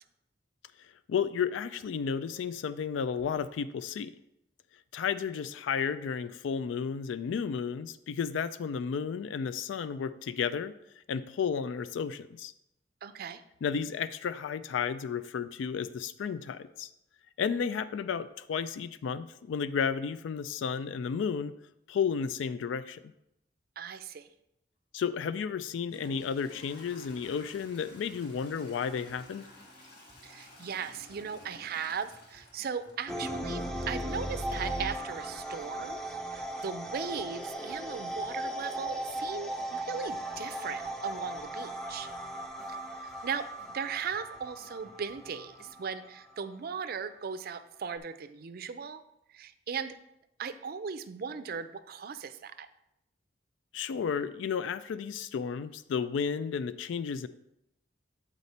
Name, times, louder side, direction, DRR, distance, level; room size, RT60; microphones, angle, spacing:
voice 1, 1.1-4.1 4.9-10.7 11.1-12.5 13.6-16.9 17.4-21.5 21.9-23.0 24.9-29.4 53.7-57.3, left 6 dB, 90° left, 14 dB, 0.3 m, -32 dB
voice 2, 13.0-13.4 23.8-24.3 30.2-36.0 36.3-42.1 43.0-43.5 43.7-49.0 49.3-50.0 50.4-52.7, right 6 dB, 55° right, 11 dB, 0.4 m, -38 dB
Toilet flush / Trickle dribble, 25.8-33.6, left 1 dB, 60° left, 1.6 m, -54 dB
sound 1, 26.8-45.7, equal, 40° left, 1.8 m, -60 dB
sound 2, 33.1-46.5, right 1 dB, 5° left, 0.5 m, -37 dB
8.1 x 4.1 x 4.2 m, 0.83 s
head